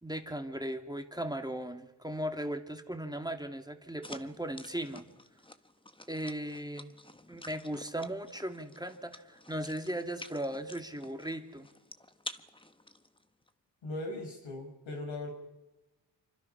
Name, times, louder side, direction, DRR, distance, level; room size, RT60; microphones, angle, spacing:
voice 1, 0.0-5.1 6.1-6.9 7.3-11.7, right 1 dB, 10° right, 5 dB, 2.2 m, -37 dB
sound 1, 4.0-13.5, left 2 dB, 10° left, 1.3 m, -50 dB
voice 2, 13.8-15.3, left 2 dB, 85° left, 1 dB, 6.9 m, -39 dB
26.0 x 24.0 x 5.9 m, 1.0 s
cardioid pair, 60°, 45 cm